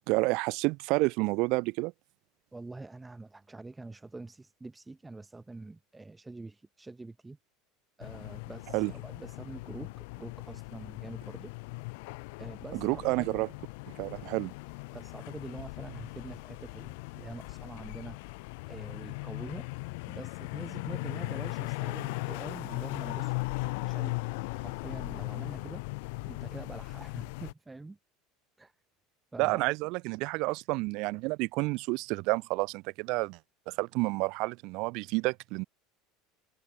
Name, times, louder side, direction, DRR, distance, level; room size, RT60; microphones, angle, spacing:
voice 1, 0.1-1.9 8.7-8.9 12.7-13.5 14.0-14.5 29.4-33.4 33.7-35.6, right 25 dB, 45° right, 2.3 m, -29 dB
voice 2, 2.5-7.4 8.0-9.9 10.2-11.5 12.4-13.3 14.9-18.2 18.7-19.7 20.1-24.2 24.6-25.8 26.3-28.0 28.6-28.7 29.3-29.7, right 3 dB, 5° right, 6.1 m, -45 dB
sound 1, 8.0-27.5, left 28 dB, 60° left, 1.1 m, -38 dB
cardioid pair, 180°, 0 cm